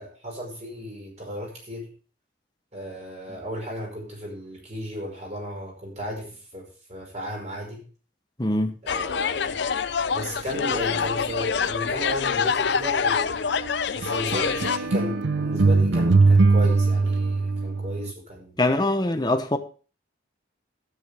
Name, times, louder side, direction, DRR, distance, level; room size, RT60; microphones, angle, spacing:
voice 1, 0.0-1.9 2.7-6.2 6.5-7.8 8.8-9.6 10.1-13.3 13.9-18.6, equal, 35° right, 5.5 m, -34 dB
voice 2, 8.4-8.7 18.6-19.6, left 2 dB, 20° left, 0.9 m, -23 dB
sound 1, 8.9-14.8, left 6 dB, 60° left, 0.5 m, -26 dB
sound 2, 14.0-18.1, right 3 dB, 70° right, 0.8 m, -20 dB
12.5 x 10.0 x 3.5 m
head